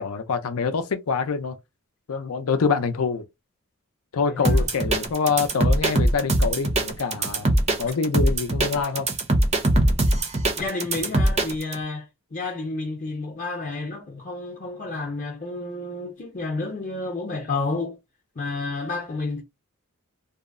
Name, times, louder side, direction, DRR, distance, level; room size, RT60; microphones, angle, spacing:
voice 1, 0.0-1.6 2.1-3.2 4.1-7.5 7.8-9.1, left 5 dB, 75° left, 0.5 m, -25 dB
voice 2, 4.3-4.6 10.6-18.0 18.4-19.4, left 3 dB, 35° left, 0.6 m, -30 dB
sound 1, 4.4-11.8, right 1 dB, 30° right, 0.5 m, -21 dB
2.7 x 2.0 x 2.4 m
head